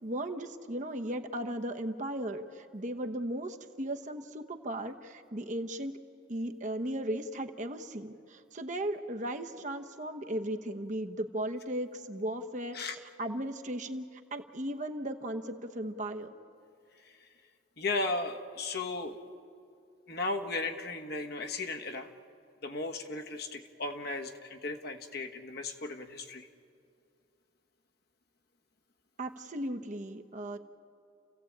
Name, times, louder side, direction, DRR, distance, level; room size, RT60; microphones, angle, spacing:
voice 1, 0.0-5.9 6.3-12.8 13.2-14.0 14.3-16.3 29.2-30.6, right 1 dB, 40° right, 5 dB, 1.0 m, -36 dB
voice 2, 17.8-19.2 20.1-22.1 22.6-26.5, left 3 dB, 55° left, 4 dB, 1.4 m, -35 dB
30.0 x 15.5 x 8.7 m, 2.5 s
head